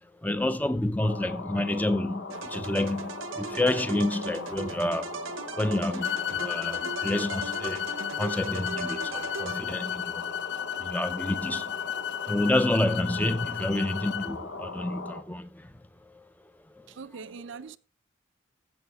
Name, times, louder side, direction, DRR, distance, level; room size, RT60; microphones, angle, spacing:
voice 1, 0.2-16.2 16.8-16.9, left 1 dB, 10° left, 0.5 m, -29 dB
sound 1, 1.0-15.2, left 3 dB, 80° left, 1.1 m, -40 dB
sound 2, 2.3-10.0, right 5 dB, 90° right, 0.9 m, -39 dB
sound 3, 6.0-14.3, left 10 dB, 60° left, 0.5 m, -34 dB
voice 2, 16.9-17.8, right 5 dB, 70° right, 0.5 m, -42 dB
15.0 x 5.7 x 4.6 m
head